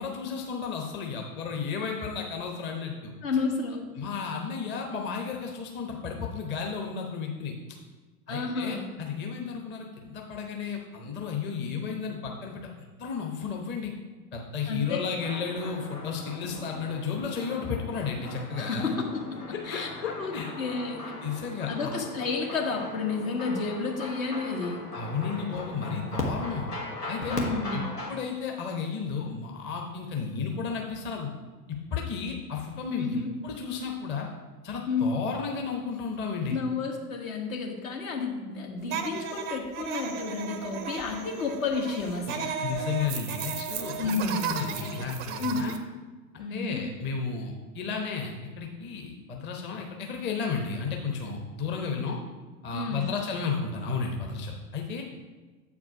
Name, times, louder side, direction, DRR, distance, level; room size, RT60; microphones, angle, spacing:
voice 1, 0.0-3.1 4.0-7.6 8.3-12.6 13.0-13.9 14.3-18.9 19.7-20.5 21.2-21.9 24.9-26.7 27.1-27.4 27.7-27.8 28.1-31.3 31.9-33.1 33.4-34.3 34.6-36.5 42.6-45.7 46.3-52.2 52.6-55.0, left 5 dB, 25° left, 1 dB, 0.9 m, -33 dB
voice 2, 3.2-3.8 8.3-8.9 14.7-15.0 18.6-19.9 20.1-21.0 21.7-24.8 27.3-27.9 33.0-33.3 34.9-35.2 36.5-42.6 44.0-44.4 45.4-45.7 46.4-46.8 52.7-53.1, left 4 dB, 60° left, 1 dB, 1.6 m, -31 dB
sound 1, 15.2-28.1, left 1 dB, 85° left, 1.4 m, -38 dB
sound 2, 38.9-45.8, right 7 dB, 20° right, 0.5 m, -35 dB
7.5 x 4.8 x 4.8 m, 1.3 s
figure-of-eight pair, 95°, 46 cm